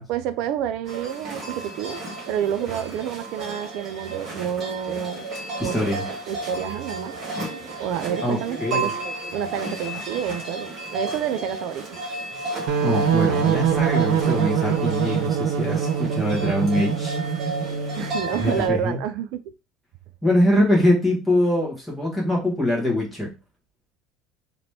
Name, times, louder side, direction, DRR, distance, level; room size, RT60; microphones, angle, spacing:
voice 1, 0.0-2.0 2.3-5.3 5.6-5.8 6.3-7.2 7.8-9.0 9.3-12.0 18.0-19.4, right 9 dB, 50° right, 0.4 m, -28 dB
sound 1, 0.9-18.7, right 2 dB, 30° right, 1.8 m, -33 dB
voice 2, 5.6-6.0 8.2-8.9 12.8-17.2 18.4-19.0 20.2-23.3, left 1 dB, ahead, 1.5 m, -23 dB
sound 2, 12.7-18.2, right 7 dB, 85° right, 0.9 m, -23 dB
4.1 x 2.9 x 3.3 m
cardioid pair, 180°, 0 cm